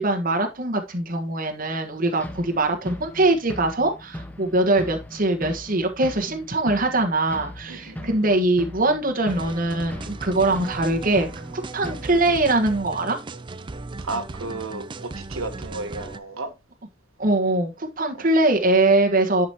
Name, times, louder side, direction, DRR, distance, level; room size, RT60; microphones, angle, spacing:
voice 1, 0.0-11.3 11.5-13.2 17.2-19.5, right 2 dB, 45° right, 1.3 m, -22 dB
sound 1, 2.2-12.2, equal, 10° left, 0.8 m, -39 dB
voice 2, 7.7-8.1 14.0-16.5 18.2-18.3, right 3 dB, 85° right, 1.3 m, -33 dB
sound 2, 9.3-16.2, right 3 dB, 25° right, 0.4 m, -37 dB
10.5 x 5.1 x 2.9 m
head